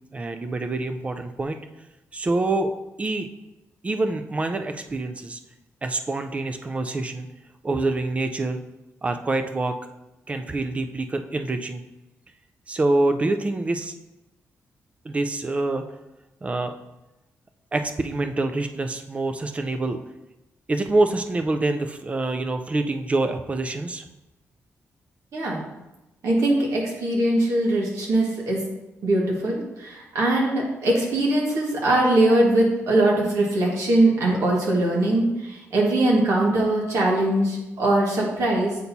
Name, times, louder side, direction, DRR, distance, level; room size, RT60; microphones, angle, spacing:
voice 1, 0.1-1.6 2.1-2.7 3.0-3.3 3.8-5.4 5.8-7.3 7.6-8.6 9.0-9.7 10.3-11.8 12.7-13.9 15.0-15.8 16.4-16.7 17.7-20.0 20.7-24.0, right 2 dB, 25° right, 7 dB, 0.4 m, -26 dB
voice 2, 26.2-28.6 29.0-38.8, right 1 dB, 70° right, -3 dB, 1.6 m, -21 dB
8.1 x 4.3 x 2.7 m, 0.99 s
cardioid pair, 115°, 5 cm